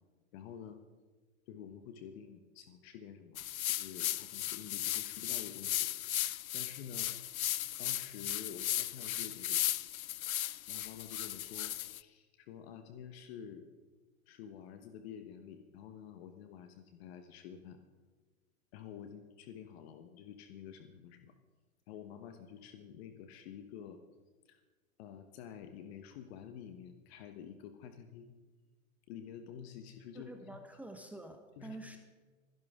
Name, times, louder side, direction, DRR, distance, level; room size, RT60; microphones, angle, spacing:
voice 1, 0.3-0.8 1.5-5.9 6.5-7.1 7.8-9.6 10.7-13.7 14.3-17.8 18.7-21.3 21.9-24.0 24.4-24.6 25.0-28.3 29.1-30.3 31.6-32.0, left 8 dB, 50° left, 8 dB, 1.2 m, -49 dB
sound 1, 3.4-12.0, left 13 dB, 85° left, 0.6 m, -36 dB
voice 2, 30.1-32.0, right 2 dB, 5° right, 4 dB, 1.1 m, -48 dB
25.5 x 11.0 x 3.7 m, 1.3 s
hypercardioid pair, 120°, 41 cm